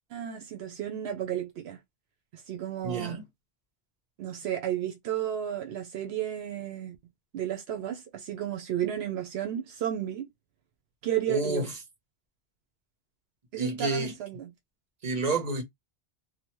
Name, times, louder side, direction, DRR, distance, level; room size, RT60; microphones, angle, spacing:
voice 1, 0.1-1.8 2.3-3.2 4.2-7.0 7.3-10.3 11.0-11.7 13.5-14.5, right 11 dB, 80° right, 0.9 m, -33 dB
voice 2, 2.8-3.2 11.3-11.8 13.6-14.2 15.0-15.6, right 2 dB, 40° right, 1.0 m, -29 dB
2.7 x 2.1 x 3.0 m
omnidirectional pair, 1.1 m